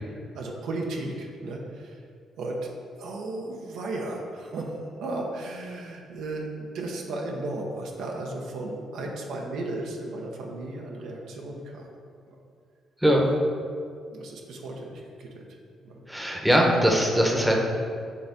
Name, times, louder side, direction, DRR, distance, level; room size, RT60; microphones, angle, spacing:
voice 1, 0.3-2.0 2.4-2.7 3.0-11.9 12.3-12.4 13.2-13.3 14.1-15.5 15.8-16.0, right 2 dB, 80° right, 0 dB, 0.9 m, -35 dB
voice 2, 16.1-17.6, equal, 5° right, 0 dB, 0.9 m, -21 dB
6.8 x 3.5 x 5.2 m, 2.3 s
cardioid pair, 90°, 0 cm